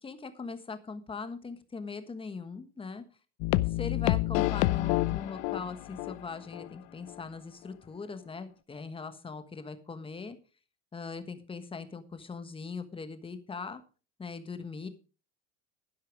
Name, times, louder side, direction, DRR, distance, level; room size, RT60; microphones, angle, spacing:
voice 1, 0.0-3.0 3.7-10.4 10.9-13.8 14.2-14.9, left 4 dB, 15° left, 10 dB, 1.3 m, -40 dB
sound 1, 3.4-6.2 6.5-6.7 7.1-7.2, left 19 dB, 60° left, 0.7 m, -28 dB
11.5 x 10.5 x 4.8 m, 0.36 s
supercardioid pair, 145°, 37 cm